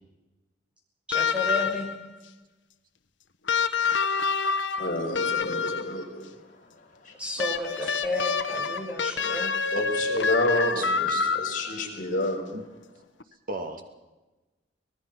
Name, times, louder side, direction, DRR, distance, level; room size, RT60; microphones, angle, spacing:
sound 1, 1.1-2.1 3.5-6.0 7.4-11.8 13.2-13.3, left 5 dB, 80° left, 1.1 m, -27 dB
voice 1, 1.1-1.9 7.2-9.5, left 1 dB, 5° right, 1 dB, 5.8 m, -32 dB
voice 2, 4.8-7.2 9.7-12.4, left 1 dB, 50° left, 0 dB, 5.4 m, -30 dB
voice 3, 10.8-11.4 12.5-12.6 13.5-13.8, right 2 dB, 50° right, 5 dB, 2.4 m, -36 dB
25.0 x 18.5 x 5.9 m, 1.1 s
head